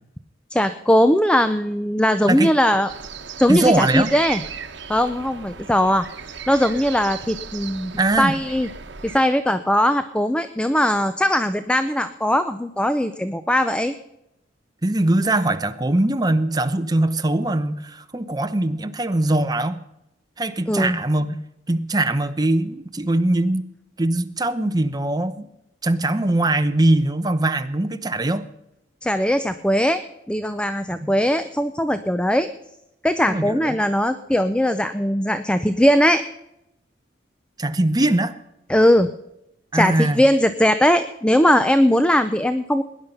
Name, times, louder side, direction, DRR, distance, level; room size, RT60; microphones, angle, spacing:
voice 1, 0.5-2.9 3.4-4.4 4.9-7.9 8.2-8.7 9.0-13.9 20.7-21.0 29.0-30.0 30.3-32.5 33.0-36.2 38.7-39.1 39.7-42.8, equal, 5° left, 11 dB, 0.5 m, -19 dB
sound 1, 2.9-9.2, right 6 dB, 80° right, 1.1 m, -36 dB
voice 2, 3.5-4.1 8.0-8.3 14.8-19.8 20.4-21.4 21.7-23.6 24.0-25.5 25.8-28.5 31.0-31.1 33.3-33.7 37.6-38.4 39.7-40.2, right 1 dB, 20° right, 9 dB, 0.8 m, -21 dB
18.5 x 10.5 x 5.5 m, 0.84 s
head